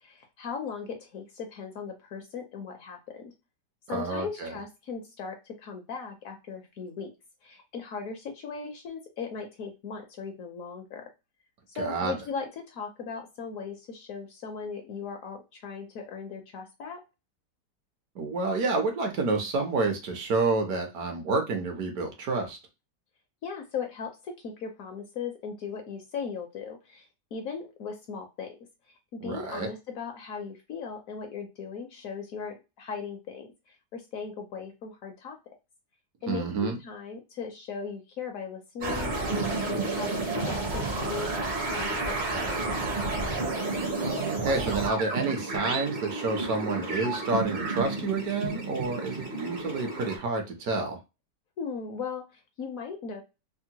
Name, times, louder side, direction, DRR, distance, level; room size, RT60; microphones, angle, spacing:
voice 1, 0.0-3.2 3.9-7.1 7.4-11.1 11.8-17.0 23.4-28.6 29.1-35.4 36.2-43.0 51.6-53.2, left 5 dB, 65° left, 4 dB, 1.0 m, -38 dB
voice 2, 3.9-4.5 11.8-12.1 18.2-22.6 29.2-29.7 36.3-36.8 44.0-51.0, right 3 dB, 65° right, 4 dB, 1.2 m, -29 dB
sound 1, 38.8-50.2, right 3 dB, 40° right, 0.7 m, -31 dB
3.5 x 2.0 x 2.8 m, 0.26 s
omnidirectional pair, 1.8 m